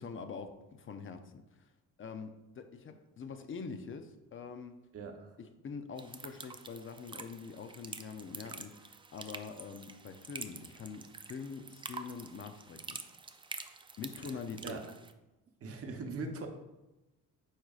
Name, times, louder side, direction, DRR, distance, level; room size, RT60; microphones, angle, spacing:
voice 1, 0.0-1.7 2.0-4.8 5.4-13.0 14.0-14.8, left 5 dB, 40° left, 8 dB, 0.5 m, -44 dB
voice 2, 4.9-5.4 14.2-14.8 15.6-16.5, right 3 dB, 45° right, 3 dB, 0.9 m, -41 dB
sound 1, 6.0-15.1, right 4 dB, 15° right, 0.3 m, -47 dB
8.7 x 4.7 x 2.4 m, 0.99 s
cardioid pair, 115°, 33 cm